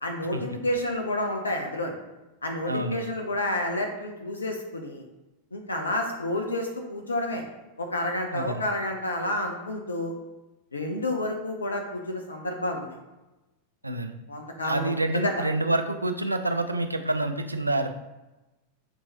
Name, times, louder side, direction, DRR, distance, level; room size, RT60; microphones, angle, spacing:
voice 1, 0.0-1.9 2.4-5.0 5.5-7.4 7.8-10.1 10.7-12.9 14.3-15.3, left 1 dB, 75° left, 2 dB, 0.5 m, -30 dB
voice 2, 2.7-3.0 8.3-8.7 13.8-14.1 14.6-17.9, right 2 dB, 85° right, 7 dB, 0.3 m, -27 dB
6.1 x 3.0 x 2.7 m, 1.1 s
figure-of-eight pair, 90°, 0 cm